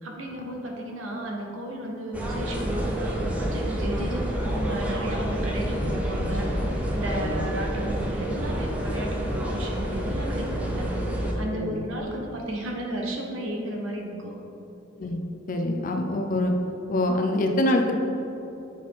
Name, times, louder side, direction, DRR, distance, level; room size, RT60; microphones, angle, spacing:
voice 1, 0.0-11.1 11.3-14.4, right 1 dB, 85° right, 1 dB, 0.9 m, -34 dB
sound 1, 2.1-11.3, equal, 5° right, 0.7 m, -28 dB
voice 2, 11.5-11.8 15.0-15.2 15.5-16.5 16.9-17.9, left 1 dB, 45° left, 3 dB, 0.5 m, -25 dB
5.6 x 4.2 x 4.7 m, 3.0 s
head